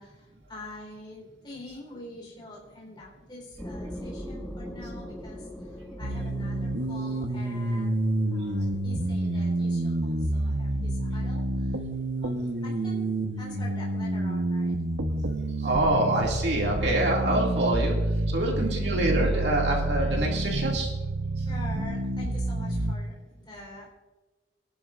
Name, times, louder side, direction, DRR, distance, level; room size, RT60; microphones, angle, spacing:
voice 1, 0.0-8.0 8.3-11.8 12.2-13.1 13.4-14.8 18.5-18.6 21.4-23.9, left 2 dB, 25° left, -4 dB, 4.1 m, -45 dB
sound 1, 3.6-10.9, equal, 5° left, 1.4 m, -42 dB
sound 2, 6.0-22.9, right 1 dB, 90° right, 1.2 m, -28 dB
voice 2, 15.6-17.9 18.3-20.9, right 1 dB, 60° right, -1 dB, 2.5 m, -26 dB
23.0 x 11.5 x 2.6 m, 1.3 s
head